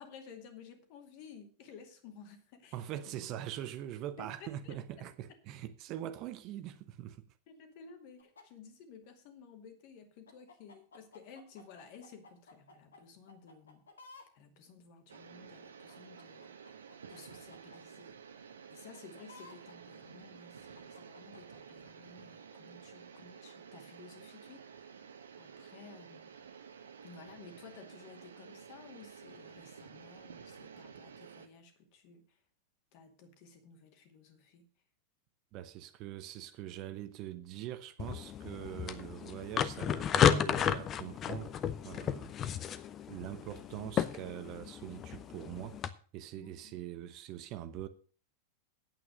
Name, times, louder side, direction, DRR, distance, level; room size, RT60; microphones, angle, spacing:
voice 1, 0.0-3.2 4.2-5.4 7.5-13.8 14.3-16.6 17.1-18.2 18.7-25.0 25.4-26.3 27.0-32.4 32.9-34.7 46.4-46.7, left 5 dB, 45° left, 2.3 m, -54 dB
voice 2, 2.7-7.2 35.5-42.3 43.1-45.8 46.1-47.9, right 12 dB, 40° right, 0.9 m, -43 dB
sound 1, 8.2-8.4 10.3-13.0 13.3-14.3 15.1-15.2 15.9-17.8 18.9-19.7 20.7-21.6, left 3 dB, 70° left, 2.0 m, -56 dB
sound 2, 15.1-31.5, right 6 dB, 70° right, 1.2 m, -52 dB
sound 3, 38.0-45.9, left 9 dB, 30° left, 0.7 m, -33 dB
9.1 x 8.5 x 6.4 m
figure-of-eight pair, 90°, 0 cm